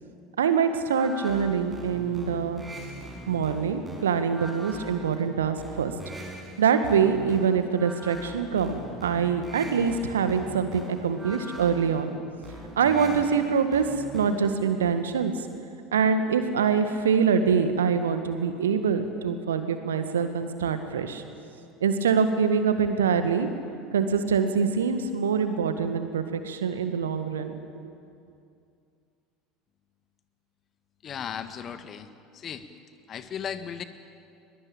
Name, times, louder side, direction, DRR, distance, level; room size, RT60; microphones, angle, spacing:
voice 1, 0.4-2.6 3.3-5.9 6.6-12.2 12.8-13.8 14.1-15.3 15.9-21.2 21.8-23.5 23.9-27.6, right 6 dB, 75° right, 9 dB, 1.8 m, -24 dB
sound 1, 0.9-14.7, right 1 dB, 10° right, 6.9 m, -42 dB
voice 2, 31.0-32.7 33.1-33.8, left 8 dB, 40° left, 11 dB, 1.6 m, -36 dB
22.0 x 21.5 x 8.8 m, 2.5 s
figure-of-eight pair, 70°, 0 cm